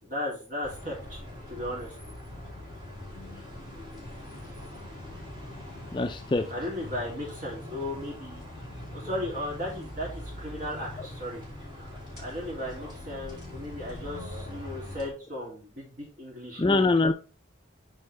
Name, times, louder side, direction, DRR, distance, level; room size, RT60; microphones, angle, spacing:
voice 1, 0.0-1.2 1.5-1.9 6.5-8.4 8.9-11.4 11.7-16.9, left 1 dB, 40° right, -2 dB, 2.7 m, -36 dB
sound 1, 0.6-15.1, left 1 dB, 20° right, 3.5 m, -42 dB
voice 2, 5.9-6.5 16.6-17.1, left 3 dB, 25° left, 7 dB, 0.4 m, -23 dB
8.4 x 4.5 x 3.2 m, 0.34 s
head